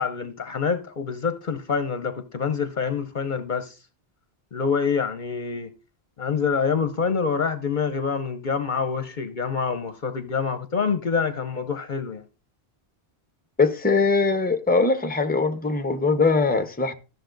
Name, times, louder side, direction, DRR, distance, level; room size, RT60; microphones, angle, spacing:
voice 1, 0.0-3.7 4.5-5.7 6.2-12.2, left 5 dB, 50° left, 0.9 m, -26 dB
voice 2, 13.6-16.9, left 4 dB, 10° left, 0.9 m, -21 dB
14.0 x 6.8 x 3.8 m
omnidirectional pair, 1.1 m